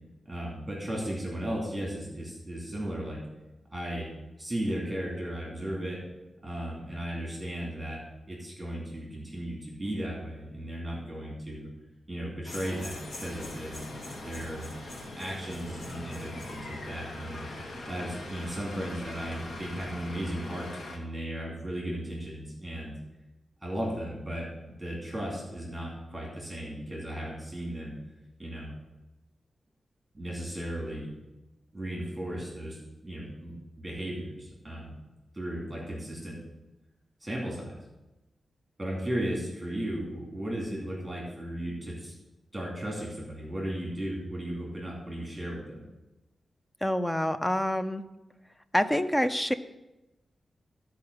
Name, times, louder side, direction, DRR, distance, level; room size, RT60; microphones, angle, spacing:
voice 1, 0.3-3.2 3.7-4.1 4.4-6.0 6.4-8.0 8.3-11.7 12.1-13.8 14.2-14.7 15.2-17.4 17.9-22.9 23.6-28.0 28.4-28.7 30.1-31.3 31.7-34.9 35.3-36.4 37.2-37.8 38.8-42.1 42.5-45.8, right 1 dB, 15° right, -3 dB, 2.6 m, -35 dB
sound 1, 12.4-21.0, left 2 dB, 60° left, 1.6 m, -41 dB
voice 2, 46.8-48.0 48.7-49.5, left 1 dB, 10° left, 10 dB, 0.5 m, -26 dB
14.0 x 4.8 x 6.6 m, 1.0 s
wide cardioid pair, 160°, 0 cm